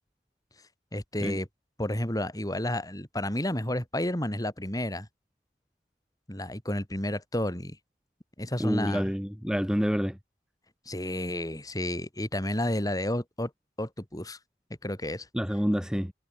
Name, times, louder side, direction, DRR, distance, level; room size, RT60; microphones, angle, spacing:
voice 1, 0.9-1.5 1.8-5.1 6.3-7.8 8.4-9.1 10.9-13.5 13.8-14.4 14.8-15.3, left 1 dB, 20° left, 4.6 m, -31 dB
voice 2, 8.6-10.2 15.3-16.1, equal, 5° right, 2.2 m, -28 dB
head